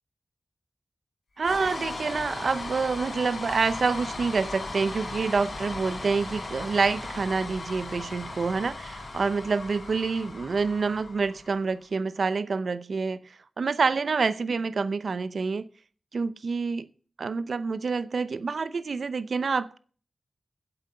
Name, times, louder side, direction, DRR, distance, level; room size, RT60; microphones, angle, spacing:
sound 1, 1.4-11.7, left 2 dB, 60° left, 3.8 m, -37 dB
voice 1, 1.4-15.6 16.1-16.9 17.2-19.8, right 4 dB, 75° right, 0.6 m, -27 dB
8.4 x 7.9 x 6.6 m
cardioid pair, 55°, 0 cm